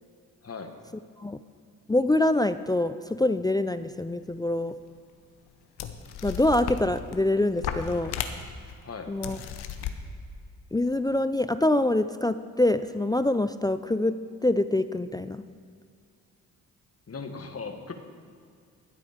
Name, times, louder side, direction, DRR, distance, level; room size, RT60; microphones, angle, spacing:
voice 1, 1.9-4.7 6.2-8.1 9.1-9.4 10.7-14.2 14.4-15.4, left 1 dB, 10° left, 12 dB, 0.3 m, -25 dB
sound 1, 4.7-4.8 5.5-5.6 5.8-7.2 7.6-8.7 9.2-9.9, left 8 dB, 80° left, 0.9 m, -34 dB
voice 2, 17.1-17.9, left 4 dB, 40° left, 6 dB, 1.5 m, -38 dB
12.5 x 7.7 x 5.1 m, 2.2 s
supercardioid pair, 55°, 38 cm